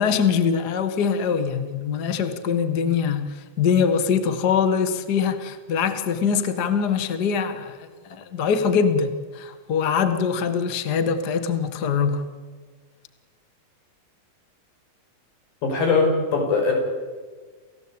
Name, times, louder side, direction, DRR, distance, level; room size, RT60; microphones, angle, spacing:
voice 1, 0.0-12.3, left 6 dB, 45° left, 9 dB, 1.3 m, -23 dB
voice 2, 15.6-16.7, left 4 dB, 70° left, 2 dB, 7.8 m, -21 dB
29.5 x 16.5 x 8.8 m, 1.5 s
omnidirectional pair, 4.2 m